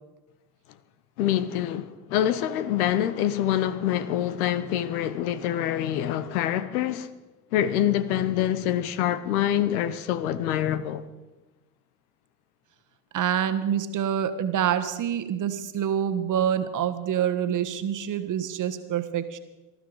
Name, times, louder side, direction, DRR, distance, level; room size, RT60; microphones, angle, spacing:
voice 1, 1.2-7.1 7.5-11.0, left 11 dB, 70° left, 1.0 m, -25 dB
voice 2, 13.1-19.4, right 9 dB, 40° right, 1.4 m, -26 dB
18.5 x 13.0 x 4.9 m
hypercardioid pair, 65°, 45 cm